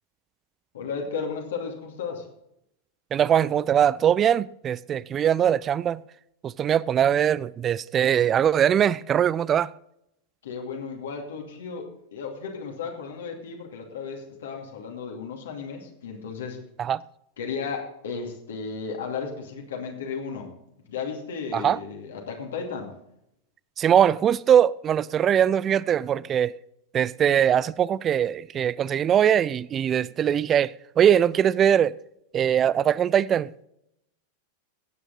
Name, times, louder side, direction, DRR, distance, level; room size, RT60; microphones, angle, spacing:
voice 1, 0.7-2.3 6.6-6.7 10.4-16.6 17.4-20.5 20.9-22.9, left 5 dB, 60° left, 2.6 m, -34 dB
voice 2, 3.1-6.0 6.4-9.7 16.8-17.0 21.5-21.8 23.8-26.6 26.9-31.9 32.3-33.6, right 9 dB, 25° right, 0.4 m, -21 dB
15.5 x 8.9 x 4.0 m
figure-of-eight pair, 90°, 0 cm